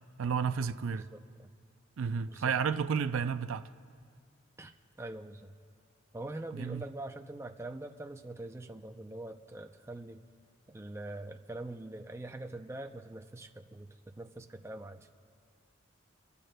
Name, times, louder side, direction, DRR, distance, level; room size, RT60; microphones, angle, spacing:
voice 1, 0.2-1.1 2.0-3.7 6.5-6.8, right 6 dB, 80° right, 0.4 m, -31 dB
voice 2, 0.9-1.5 2.3-2.5 4.6-5.5 6.1-10.2 10.7-15.1, right 2 dB, 15° right, 0.4 m, -44 dB
29.0 x 15.0 x 2.2 m
head